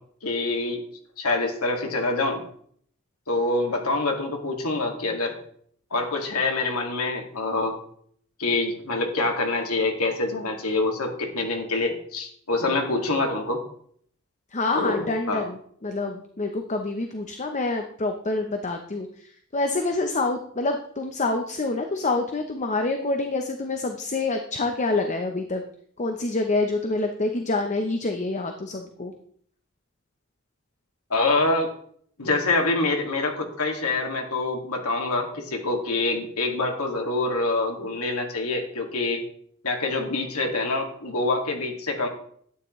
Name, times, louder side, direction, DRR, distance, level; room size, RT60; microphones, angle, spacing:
voice 1, 0.2-0.8 1.2-2.4 3.3-5.3 5.9-7.7 8.4-13.6 14.7-15.4 31.1-31.7 32.2-39.2 39.6-42.1, left 2 dB, 80° left, 2 dB, 2.2 m, -25 dB
voice 2, 14.5-25.6 26.0-29.1, left 2 dB, 35° left, 5 dB, 0.8 m, -27 dB
12.0 x 9.6 x 3.2 m, 0.62 s
head